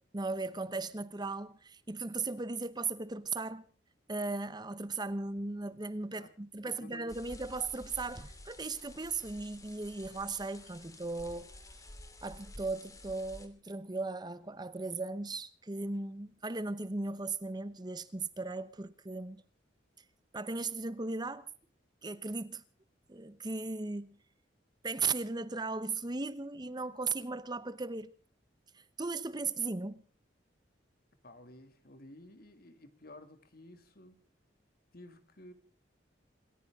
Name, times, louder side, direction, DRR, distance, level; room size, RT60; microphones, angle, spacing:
voice 1, 0.1-3.6 4.1-11.5 12.2-19.4 20.3-21.5 22.0-22.6 23.1-24.1 24.8-28.1 28.7-30.0, right 3 dB, 25° right, 0.9 m, -37 dB
voice 2, 6.6-7.3 31.2-34.2 34.9-35.5, left 1 dB, 55° left, 2.3 m, -53 dB
sound 1, 7.1-13.5, left 1 dB, 20° left, 2.7 m, -51 dB
27.5 x 14.5 x 3.7 m
head